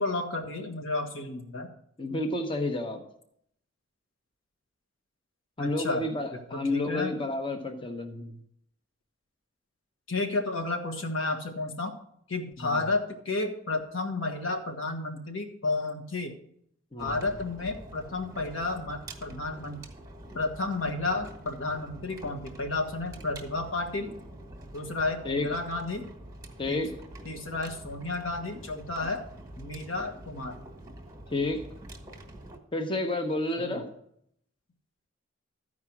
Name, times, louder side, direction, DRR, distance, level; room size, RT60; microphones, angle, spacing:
voice 1, 0.0-1.7 2.1-2.2 5.6-6.1 6.5-7.1 10.1-11.9 12.3-16.3 17.0-19.8 20.3-24.1 24.7-26.1 26.7-26.8 27.2-29.2 29.6-30.6 33.6-33.8, left 2 dB, 85° left, 4 dB, 1.5 m, -32 dB
voice 2, 2.0-3.0 5.6-8.4 12.6-12.8 16.9-17.2 25.2-25.5 26.6-26.9 31.3-31.6 32.7-33.9, left 2 dB, 25° left, 5 dB, 0.9 m, -30 dB
sound 1, 17.0-32.6, right 1 dB, 20° right, 1.2 m, -46 dB
13.0 x 4.8 x 6.0 m, 0.70 s
head